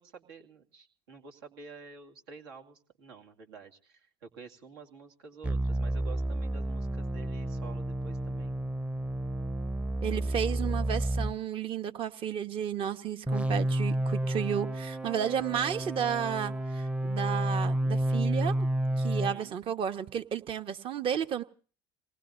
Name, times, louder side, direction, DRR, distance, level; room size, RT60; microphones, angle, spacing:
voice 1, 0.0-8.6 19.1-19.6, right 4 dB, 85° right, 2.4 m, -50 dB
sound 1, 5.4-11.4 13.3-19.4, right 1 dB, 10° right, 0.7 m, -30 dB
voice 2, 10.0-18.7 18.9-21.4, right 9 dB, 45° right, 1.2 m, -32 dB
28.5 x 19.0 x 2.6 m
hypercardioid pair, 80°, 12 cm